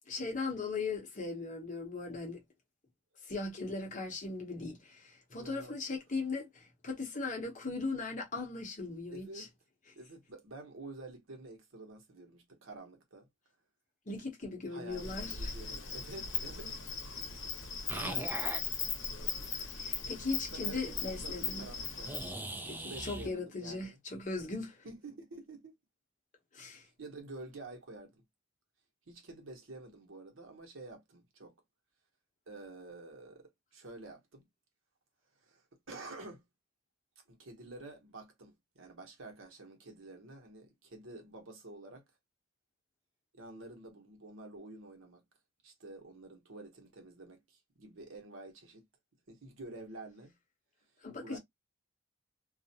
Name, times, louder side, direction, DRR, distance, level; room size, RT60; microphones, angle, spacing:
voice 1, 0.1-2.4 3.3-9.5 14.1-15.5 19.5-21.7 22.7-24.9 26.5-26.9 51.0-51.4, left 3 dB, 40° left, 0.8 m, -38 dB
voice 2, 5.4-5.8 9.1-9.5 10.0-13.3 14.7-16.9 17.9-18.4 20.5-24.0 24.8-25.8 26.8-28.2 29.1-31.5 32.5-34.5 35.4-36.4 37.3-42.0 43.3-45.2 45.6-48.9 49.3-50.4 51.2-51.4, right 2 dB, 75° right, 0.9 m, -49 dB
Insect, 14.9-22.3, left 5 dB, 75° left, 0.8 m, -38 dB
sound 1, 17.9-18.6 22.0-23.3, right 1 dB, 10° right, 0.3 m, -40 dB
2.4 x 2.1 x 2.7 m
head